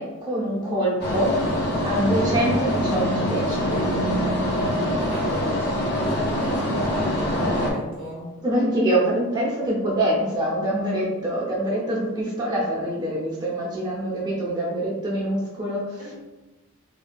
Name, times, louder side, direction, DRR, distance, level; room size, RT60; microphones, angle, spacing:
voice 1, 0.0-1.3 1.8-3.9 8.4-15.8, right 1 dB, 20° right, -5 dB, 0.5 m, -25 dB
sound 1, 1.0-7.7, equal, 45° left, 0.6 m, -24 dB
voice 2, 5.0-8.3 16.0-16.1, equal, 75° left, -6 dB, 1.3 m, -35 dB
3.3 x 2.5 x 2.2 m, 1.1 s
head